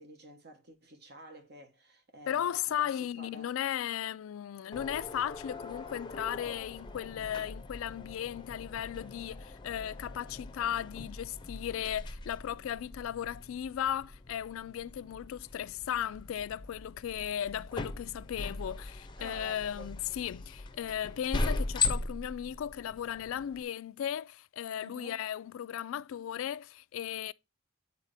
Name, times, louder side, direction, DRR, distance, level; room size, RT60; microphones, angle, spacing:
voice 1, 0.0-3.5 19.2-19.9 24.8-25.2, right 2 dB, 55° right, 1.3 m, -50 dB
voice 2, 2.3-27.3, left 10 dB, 90° left, 0.3 m, -36 dB
sound 1, 4.7-23.6, left 3 dB, 25° left, 0.6 m, -40 dB
9.4 x 4.1 x 2.6 m
head